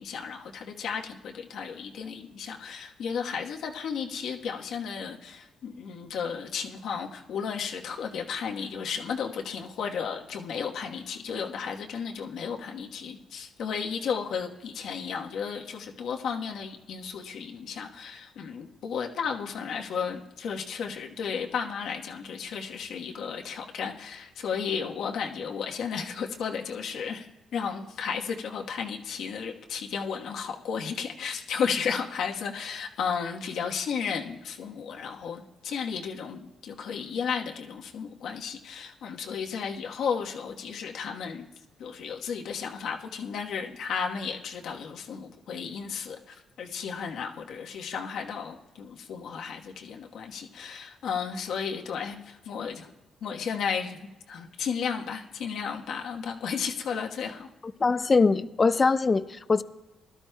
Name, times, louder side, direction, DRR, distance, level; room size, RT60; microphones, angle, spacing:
voice 1, 0.0-27.3 27.5-41.5 41.8-52.9 53.2-57.5, left 6 dB, 75° left, 1 dB, 1.2 m, -33 dB
voice 2, 57.8-59.6, left 4 dB, 30° left, 14 dB, 0.5 m, -22 dB
21.0 x 12.5 x 2.2 m, 1.1 s
cardioid pair, 90°, 0 cm